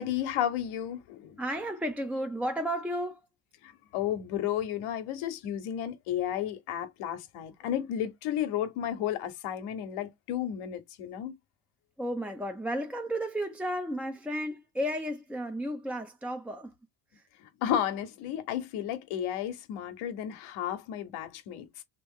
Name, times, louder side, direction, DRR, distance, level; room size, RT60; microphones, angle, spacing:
voice 1, 0.0-1.4 3.6-11.3 17.6-21.8, left 10 dB, 80° left, 1.0 m, -33 dB
voice 2, 1.4-3.2 12.0-16.7 17.1-17.2, equal, 5° right, 0.4 m, -33 dB
3.0 x 2.9 x 3.5 m
cardioid pair, 95°, 49 cm